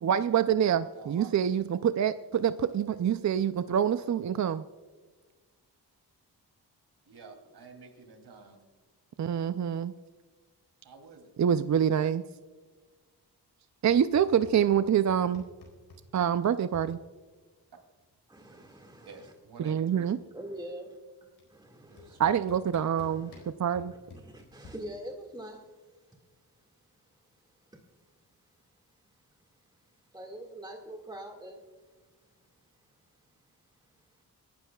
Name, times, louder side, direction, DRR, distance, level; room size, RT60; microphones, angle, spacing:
voice 1, 0.0-4.6 9.2-9.9 11.4-12.2 13.8-15.4 16.1-17.0 19.6-20.2 22.2-23.3 23.6-23.9, right 8 dB, 45° right, 12 dB, 0.5 m, -26 dB
voice 2, 0.7-1.6 2.7-2.8 7.1-8.6 10.8-11.3 19.0-20.1 21.9-22.4, right 4 dB, 75° right, 4 dB, 3.0 m, -50 dB
sound 1, 13.8-14.8 15.1-16.8 18.1-18.2 18.5-18.9 19.1-20.5 21.4-21.5 22.0-24.7, left 2 dB, 80° left, 4.4 m, -52 dB
voice 3, 18.3-19.3 19.6-19.8 20.3-22.2 22.8-23.5 24.2-25.7 30.1-31.6, right 1 dB, 10° right, 1 dB, 2.0 m, -44 dB
26.5 x 12.0 x 2.3 m, 1.4 s
cardioid pair, 70°, 40 cm